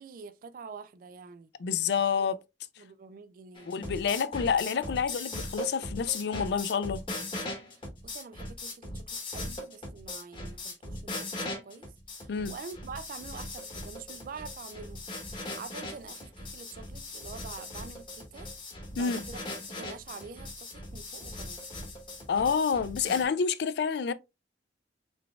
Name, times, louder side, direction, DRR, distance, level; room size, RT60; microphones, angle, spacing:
voice 1, 0.0-1.5 2.2-2.3 2.8-3.7 4.0-4.1 4.7-4.8 7.7-18.5 18.9-19.4 19.8-21.6, right 5 dB, 50° right, 0.3 m, -46 dB
voice 2, 1.6-2.4 3.7-7.0 12.3-12.5 19.0-19.2 22.3-24.1, left 6 dB, 60° left, 0.3 m, -28 dB
sound 1, 3.5-23.2, left 2 dB, 30° left, 1.0 m, -39 dB
3.9 x 3.4 x 2.3 m
head